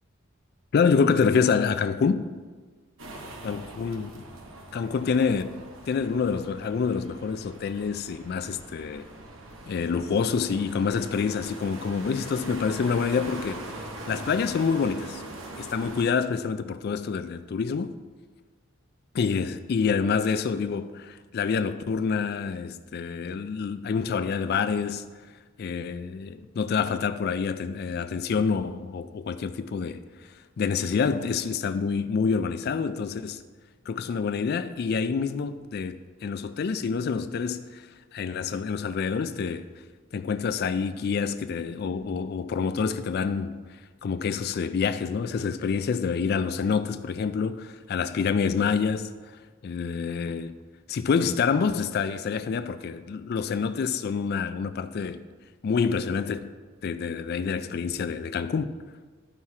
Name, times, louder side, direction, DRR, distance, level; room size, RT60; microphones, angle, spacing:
voice 1, 0.7-2.3 3.4-4.3 4.7-9.1 9.7-15.2 15.6-17.9 19.1-25.0 25.6-30.0 30.6-33.4 33.9-39.7 40.1-43.6 44.0-49.3 49.6-50.6 50.9-55.2 55.6-56.5 56.8-58.7, left 5 dB, 55° left, 0.3 m, -27 dB
sound 1, 3.0-16.0, right 2 dB, 80° right, 1.1 m, -42 dB
12.5 x 4.3 x 4.8 m
head